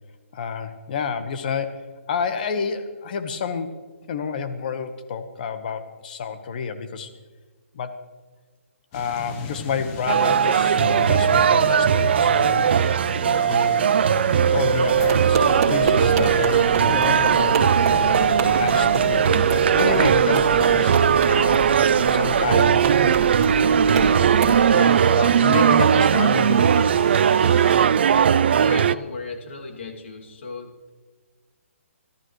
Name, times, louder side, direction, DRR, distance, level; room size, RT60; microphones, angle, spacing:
voice 1, 0.3-3.8 4.1-7.1 7.7-8.1 8.9-12.7 13.5-13.8 14.5-17.7 18.6-21.7 22.1-23.2 24.6-27.0, left 6 dB, 40° left, 9 dB, 1.2 m, -29 dB
sound 1, 8.9-27.8, left 4 dB, 20° left, 1.1 m, -38 dB
sound 2, 10.1-29.0, right 8 dB, 50° right, 0.4 m, -18 dB
sound 3, 14.9-24.6, right 3 dB, 30° right, 3.2 m, -28 dB
voice 2, 28.1-30.9, left 4 dB, 55° left, 2 dB, 2.6 m, -37 dB
26.0 x 13.5 x 3.2 m, 1.4 s
hypercardioid pair, 165°, 8 cm